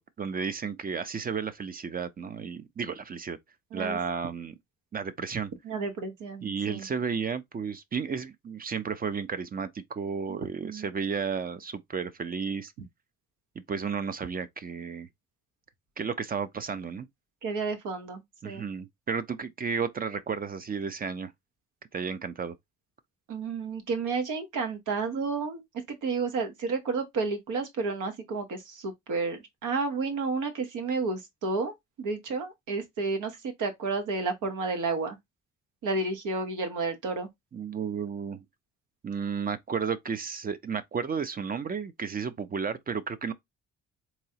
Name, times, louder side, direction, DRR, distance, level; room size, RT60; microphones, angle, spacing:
voice 1, 0.0-3.4 3.7-4.6 4.9-5.5 6.4-12.7 13.7-15.1 16.0-17.1 18.4-21.3 21.9-22.6 37.5-38.4 39.0-43.3, right 6 dB, 30° right, 0.4 m, -33 dB
voice 2, 5.6-6.9 10.3-10.9 17.4-18.7 23.3-25.6 25.9-35.2 35.8-37.3, right 4 dB, 80° right, 1.1 m, -31 dB
3.8 x 2.9 x 2.8 m
cardioid pair, 90°, 30 cm